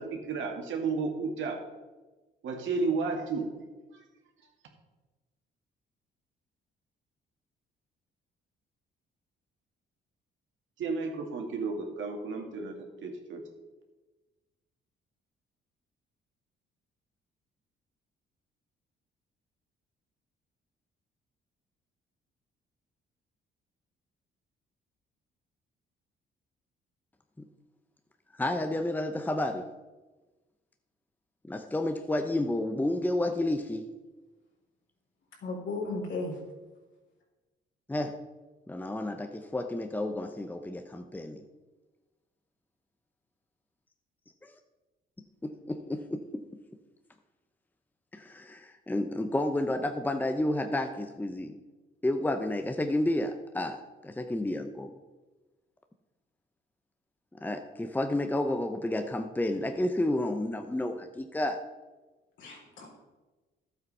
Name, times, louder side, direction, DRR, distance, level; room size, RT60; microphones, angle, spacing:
voice 1, 0.0-1.6 2.4-3.5 3.9-4.0 10.8-12.7 13.0-13.4, right 4 dB, 75° right, 2 dB, 2.2 m, -32 dB
voice 2, 28.4-29.7 31.5-33.9 37.9-38.2 38.7-41.4 44.4-44.5 45.4-46.6 48.1-51.6 52.0-54.9 57.4-61.7, left 1 dB, 10° left, 6 dB, 0.8 m, -31 dB
voice 3, 35.4-36.4 62.4-62.9, left 3 dB, 70° left, -1 dB, 3.9 m, -35 dB
12.0 x 8.0 x 5.6 m, 1.2 s
cardioid pair, 90°, 20 cm